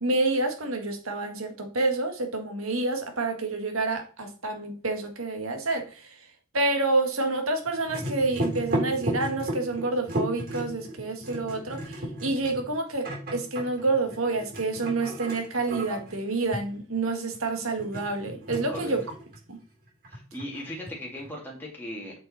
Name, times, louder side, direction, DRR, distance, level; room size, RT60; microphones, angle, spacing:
voice 1, 0.0-6.1 6.5-19.0 19.5-19.6, right 3 dB, 75° right, 1.8 m, -28 dB
sound 1, 7.6-19.6 19.9-21.3, right 1 dB, 45° right, 3.3 m, -34 dB
voice 2, 20.1-22.1, left 1 dB, 10° left, 2.1 m, -38 dB
7.8 x 5.7 x 4.2 m
head